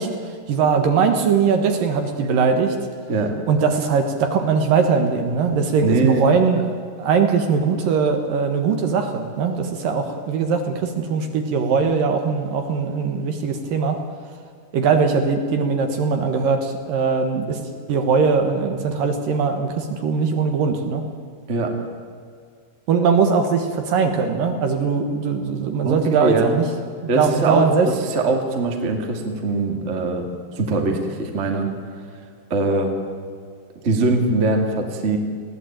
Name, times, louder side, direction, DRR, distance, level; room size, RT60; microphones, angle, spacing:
voice 1, 0.0-2.8 3.5-6.7 7.0-14.0 14.7-17.6 17.9-21.0 22.9-26.7 27.2-27.9, right 5 dB, 65° right, 5 dB, 2.8 m, -20 dB
voice 2, 5.8-6.3 21.5-21.9 25.8-26.6 27.1-27.7 28.1-30.3 30.5-31.7 32.5-32.9 33.8-35.2, right 3 dB, 25° right, 3 dB, 1.8 m, -21 dB
21.0 x 16.5 x 9.0 m, 2.1 s
omnidirectional pair, 4.7 m